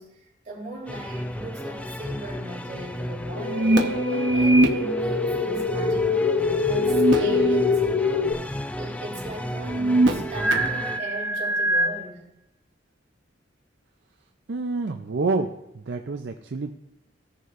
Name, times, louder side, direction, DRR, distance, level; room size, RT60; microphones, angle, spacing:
voice 1, 0.0-3.8 4.1-6.4 6.7-8.3 8.8-12.2, right 2 dB, 40° right, -5 dB, 3.9 m, -38 dB
sound 1, 0.9-11.0, left 1 dB, 5° left, 0.3 m, -34 dB
sound 2, 3.3-8.3, left 4 dB, 60° left, 0.6 m, -24 dB
sound 3, 3.4-4.7 6.8-7.7 8.1-8.2 9.6-11.9, right 2 dB, 85° right, 0.9 m, -22 dB
voice 2, 14.5-16.7, right 3 dB, 65° right, 4 dB, 0.5 m, -28 dB
16.0 x 6.8 x 2.5 m, 0.86 s
head